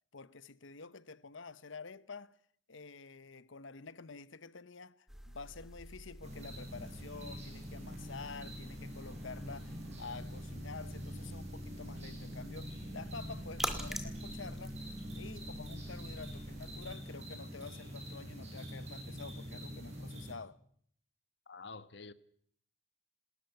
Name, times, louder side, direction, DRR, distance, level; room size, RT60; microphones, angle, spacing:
voice 1, 0.1-2.4 2.7-14.8 15.2-20.6, left 4 dB, 80° left, 1.0 m, -49 dB
sound 1, 5.1-16.9, equal, ahead, 2.1 m, -47 dB
sound 2, 6.2-20.3, equal, 35° right, 5.7 m, -45 dB
voice 2, 21.5-22.1, left 4 dB, 60° left, 1.2 m, -48 dB
28.5 x 13.5 x 9.3 m
head